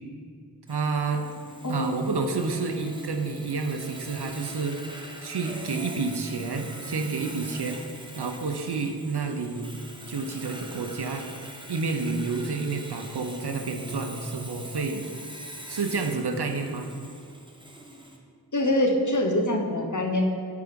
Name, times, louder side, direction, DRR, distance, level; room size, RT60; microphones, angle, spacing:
Sawing, 0.7-18.2, right 1 dB, 10° right, 1.0 m, -43 dB
voice 1, 0.7-1.3 1.7-4.8 5.2-7.8 8.2-9.8 10.1-11.3 11.7-15.0 15.7-16.9, right 4 dB, 85° right, 5 dB, 0.8 m, -29 dB
voice 2, 1.6-2.1 18.5-20.3, left 1 dB, 50° left, 2 dB, 1.1 m, -24 dB
8.4 x 4.8 x 5.2 m, 2.2 s
wide cardioid pair, 50°, 39 cm